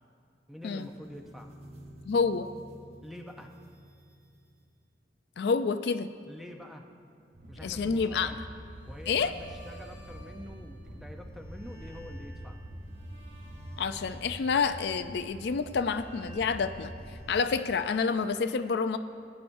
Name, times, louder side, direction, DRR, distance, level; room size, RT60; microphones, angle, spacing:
voice 1, 0.5-1.6 3.0-3.5 6.3-6.9 7.5-8.4 8.9-12.6, left 1 dB, ahead, 3 dB, 0.6 m, -46 dB
sound 1, 0.6-4.8 8.7-11.0 11.3-17.8, right 1 dB, 35° right, 1.3 m, -54 dB
voice 2, 2.1-2.5 5.4-6.1 7.6-8.3 9.1-9.3 13.8-16.9 17.3-19.0, left 5 dB, 65° left, 10 dB, 0.4 m, -28 dB
sound 2, 7.3-17.2, equal, 75° right, 2.8 m, -45 dB
18.5 x 9.8 x 2.6 m, 2.5 s
head